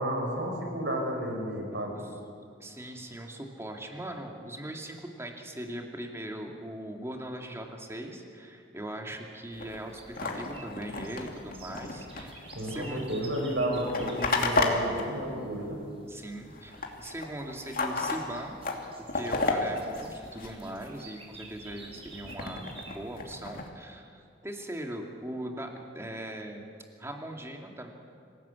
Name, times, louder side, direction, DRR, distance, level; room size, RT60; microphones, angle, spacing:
voice 1, 0.0-1.9 12.5-15.8, right 1 dB, 70° right, 1 dB, 6.3 m, -31 dB
voice 2, 1.7-2.0 2.6-13.0 16.1-18.6 19.0-26.7 27.0-27.9, right 1 dB, 15° right, 1 dB, 2.7 m, -40 dB
sound 1, 9.6-16.2 16.4-21.0 21.4-23.7, left 3 dB, 50° left, 2.7 m, -33 dB
sound 2, 9.7-14.5 16.7-17.1 17.5-23.1, right 3 dB, 30° right, 3.6 m, -50 dB
26.5 x 18.0 x 8.5 m, 2.3 s
head